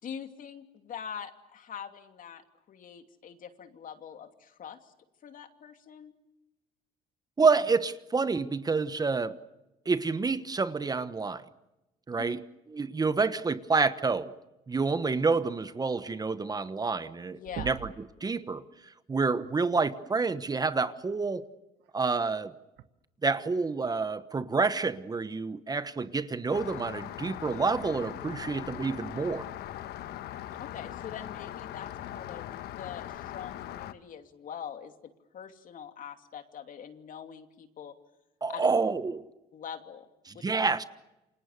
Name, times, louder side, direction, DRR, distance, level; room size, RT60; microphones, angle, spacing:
voice 1, 0.0-4.9 5.2-6.1 12.2-12.3 17.3-17.8 30.5-34.9 35.3-37.9 38.5-38.7 39.5-40.1, left 8 dB, 55° left, 7 dB, 2.8 m, -43 dB
voice 2, 7.4-9.3 9.8-11.4 12.1-12.4 12.7-14.3 14.7-17.8 18.2-18.6 19.1-21.4 21.9-22.5 23.2-29.4 38.4-39.2 40.3-40.8, right 4 dB, 20° right, 13 dB, 1.2 m, -28 dB
sound 1, 17.1-17.2 17.4-18.1 19.8-19.9 21.8-21.9 22.8-22.9, right 12 dB, 75° right, 1.4 m, -41 dB
Rain, 26.5-33.9, left 12 dB, 75° left, 1.3 m, -40 dB
28.5 x 25.5 x 6.8 m, 0.97 s
cardioid pair, 110°, 17 cm